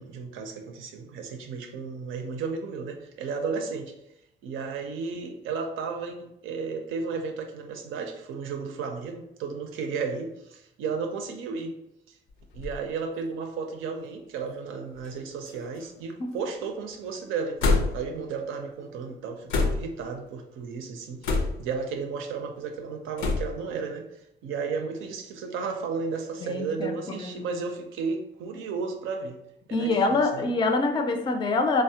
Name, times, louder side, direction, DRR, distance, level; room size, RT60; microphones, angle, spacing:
voice 1, 0.0-3.9 4.4-11.7 12.1-12.2 12.5-24.1 24.4-29.4 29.7-30.5, right 5 dB, 90° right, 4 dB, 0.5 m, -33 dB
sound 1, 12.3-12.8 13.6-13.7 15.0-15.2 15.5-16.0 17.6-18.2 19.5-20.0 21.2-21.8 23.2-23.6, left 3 dB, 90° left, 0.5 m, -26 dB
voice 2, 26.4-27.5 29.7-31.8, left 3 dB, 25° left, 6 dB, 0.3 m, -25 dB
3.3 x 2.0 x 2.7 m, 0.80 s
cardioid pair, 90°, 20 cm